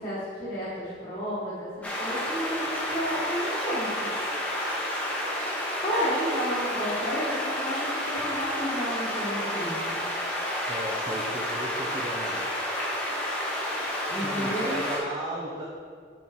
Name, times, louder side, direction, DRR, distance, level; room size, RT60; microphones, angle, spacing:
voice 1, 0.0-4.1 5.8-10.0 14.1-14.8, equal, 25° left, -11 dB, 1.5 m, -32 dB
sound 1, 1.8-15.0, equal, 5° left, 1.0 m, -30 dB
voice 2, 10.7-12.4 14.2-15.6, equal, 20° right, -3 dB, 0.6 m, -35 dB
7.0 x 4.6 x 4.3 m, 2.1 s
head